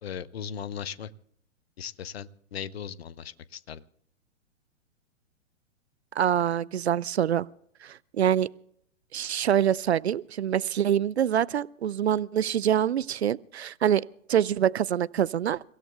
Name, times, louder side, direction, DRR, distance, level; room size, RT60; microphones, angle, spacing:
voice 1, 0.0-1.1 1.8-3.8, left 8 dB, 50° left, 0.8 m, -38 dB
voice 2, 6.2-7.5 7.8-8.5 9.1-14.0 14.3-15.6, right 9 dB, 60° right, 0.5 m, -25 dB
30.0 x 16.5 x 2.3 m
figure-of-eight pair, 115°, 38 cm